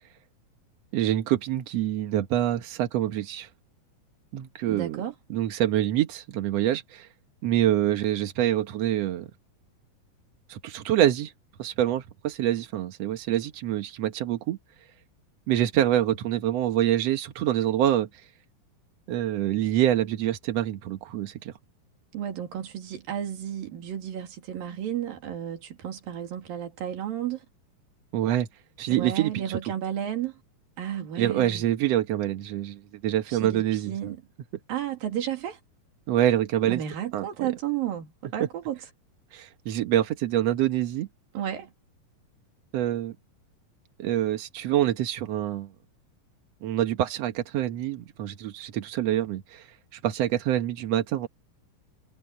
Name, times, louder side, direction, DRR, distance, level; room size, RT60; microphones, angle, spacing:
voice 1, 0.9-3.5 4.3-5.0 5.3-7.1 7.4-9.3 10.5-11.3 11.6-14.6 15.5-18.3 19.1-21.5 28.1-28.5 28.8-29.6 31.2-33.9 36.1-36.8 37.1-37.3 39.3-41.1 42.7-43.2 44.0-45.7 46.6-51.3, right 12 dB, 65° right, 1.7 m, -26 dB
voice 2, 4.7-5.1 22.1-27.5 28.9-30.4 30.8-31.6 33.3-34.2 34.7-35.6 36.7-38.8 41.3-41.7, right 10 dB, 90° right, 4.2 m, -32 dB
omnidirectional pair, 4.0 m